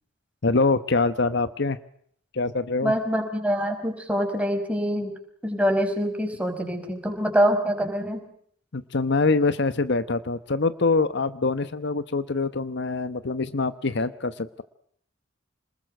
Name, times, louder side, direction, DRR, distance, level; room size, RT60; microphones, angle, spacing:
voice 1, 0.4-1.8 2.3-2.9 8.7-14.6, left 3 dB, 60° left, 13 dB, 1.0 m, -24 dB
voice 2, 2.8-5.2 5.4-8.2, equal, 5° right, 4 dB, 5.2 m, -25 dB
27.5 x 20.5 x 7.7 m, 0.65 s
head